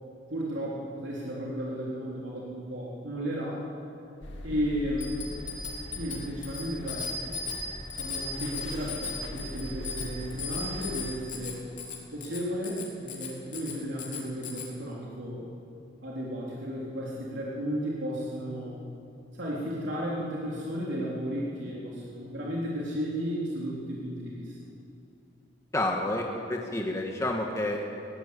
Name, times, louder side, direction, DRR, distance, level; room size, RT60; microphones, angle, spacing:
voice 1, 0.3-3.6 4.4-5.2 6.0-7.2 7.9-11.6 12.1-15.5 16.0-18.8 19.3-24.6, equal, 75° right, -5 dB, 3.6 m, -34 dB
sound 1, 4.2-11.1, left 1 dB, 85° left, 2.3 m, -41 dB
Bicycle bell, 5.0-14.7, left 4 dB, 45° left, 3.7 m, -38 dB
voice 2, 25.7-27.8, left 1 dB, 15° left, 1 dB, 1.6 m, -29 dB
20.5 x 18.0 x 8.4 m, 2.7 s
head